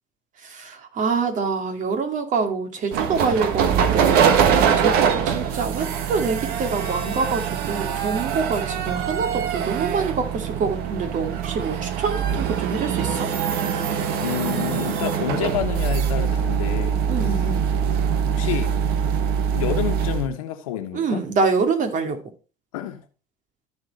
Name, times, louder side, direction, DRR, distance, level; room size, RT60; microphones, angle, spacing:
voice 1, 0.4-13.3 17.1-17.7 18.4-18.5 20.9-22.2, right 4 dB, 50° right, 2.5 m, -26 dB
sound 1, 2.9-20.3, right 7 dB, 65° right, 1.4 m, -23 dB
voice 2, 14.2-17.5 18.3-18.9 19.5-21.3 22.7-23.0, left 11 dB, 85° left, 1.4 m, -29 dB
13.5 x 4.6 x 4.2 m
hypercardioid pair, 80°, 17 cm